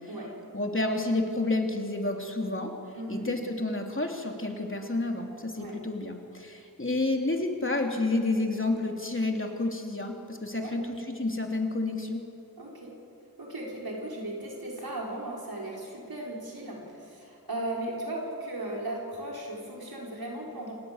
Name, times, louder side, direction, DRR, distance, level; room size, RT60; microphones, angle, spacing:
voice 1, 0.5-2.7 3.1-12.2, left 2 dB, 35° left, 2 dB, 3.1 m, -30 dB
voice 2, 2.9-3.3 5.5-5.8 10.5-10.7 12.6-12.9 13.4-20.7, right 1 dB, 75° right, -3 dB, 5.8 m, -36 dB
27.5 x 18.0 x 7.3 m, 2.6 s
cardioid pair, 45°, 36 cm